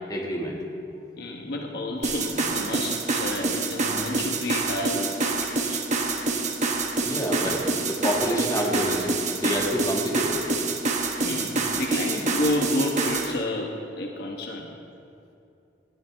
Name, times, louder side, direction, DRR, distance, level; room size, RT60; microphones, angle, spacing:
voice 1, 0.1-0.6 7.0-10.5, equal, 20° left, -2 dB, 2.0 m, -28 dB
voice 2, 1.2-5.8 11.2-14.8, left 1 dB, 60° left, 1 dB, 1.2 m, -30 dB
sound 1, 2.0-13.3, right 3 dB, 40° right, 1.3 m, -27 dB
19.5 x 14.0 x 3.5 m, 2.7 s
head